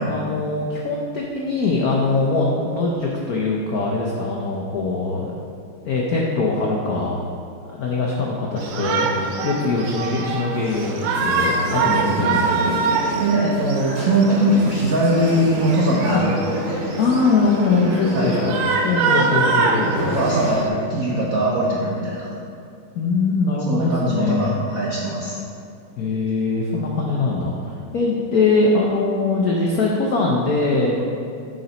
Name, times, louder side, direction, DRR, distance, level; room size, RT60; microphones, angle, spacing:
voice 1, 0.0-5.4 5.8-7.2 7.7-12.7 17.0-20.2 22.9-24.5 26.0-31.0, left 3 dB, 85° left, -2 dB, 0.8 m, -22 dB
Shout, 8.6-20.7, right 4 dB, 90° right, 1.6 m, -25 dB
sound 1, 10.5-20.6, equal, 45° right, 2.3 m, -29 dB
voice 2, 13.2-16.6 18.1-18.4 19.8-22.3 23.7-25.4, right 1 dB, 75° right, -4 dB, 0.8 m, -21 dB
9.3 x 3.9 x 4.0 m, 2.5 s
omnidirectional pair, 2.4 m